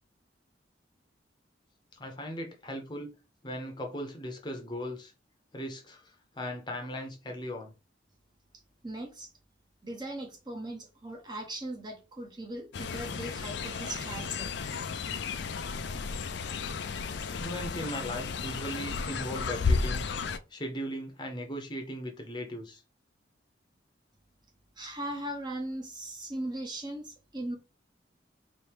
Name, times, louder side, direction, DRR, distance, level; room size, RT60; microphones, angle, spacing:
voice 1, 1.9-3.1 3.4-5.1 5.5-7.7 17.2-20.1 20.5-22.8, equal, 25° left, 0.8 m, -38 dB
voice 2, 8.8-9.3 9.8-14.9 24.8-27.5, right 1 dB, 20° right, 0.8 m, -39 dB
Fowl, 12.7-20.4, left 4 dB, 65° left, 0.4 m, -33 dB
4.4 x 2.7 x 3.4 m
head